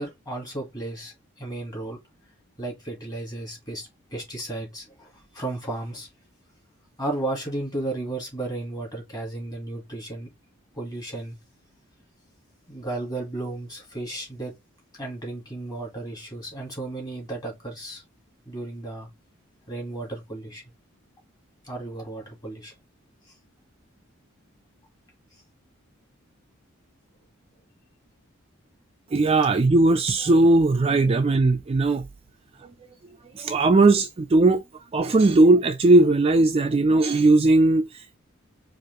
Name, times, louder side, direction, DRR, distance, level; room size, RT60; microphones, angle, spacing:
voice 1, 0.0-2.0 2.6-6.1 7.0-10.3 10.8-11.4 12.7-14.6 15.0-18.0 18.5-19.1 19.7-20.6 21.6-22.7, right 2 dB, 20° left, 1.8 m, -34 dB
voice 2, 29.1-32.1 32.6-32.7 33.4-34.6 34.9-38.2, right 2 dB, 30° right, 0.3 m, -18 dB
4.6 x 2.5 x 3.1 m
head